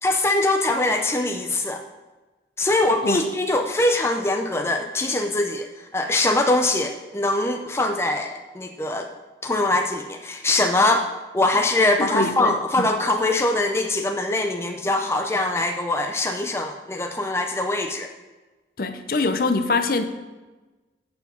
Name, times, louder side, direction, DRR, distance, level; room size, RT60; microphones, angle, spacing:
voice 1, 0.0-1.8 2.6-9.1 9.4-11.1 11.3-18.1, left 2 dB, 15° left, 4 dB, 0.5 m, -22 dB
voice 2, 12.0-12.9 18.8-20.0, left 3 dB, 50° left, 8 dB, 0.7 m, -24 dB
8.1 x 7.0 x 5.2 m, 1.2 s
head